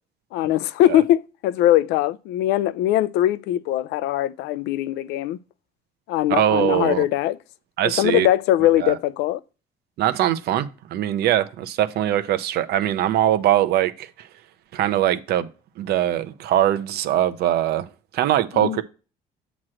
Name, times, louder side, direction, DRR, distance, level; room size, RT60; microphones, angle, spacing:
voice 1, 0.3-5.4 6.1-7.4 7.8-9.4 18.5-18.8, left 13 dB, 85° left, 0.4 m, -21 dB
voice 2, 6.3-7.0 7.8-8.3 8.8-8.9 10.0-14.3 14.7-15.5 15.8-17.9 18.1-18.8, right 12 dB, 70° right, 0.6 m, -22 dB
7.5 x 3.1 x 6.1 m
cardioid pair, 110°, 17 cm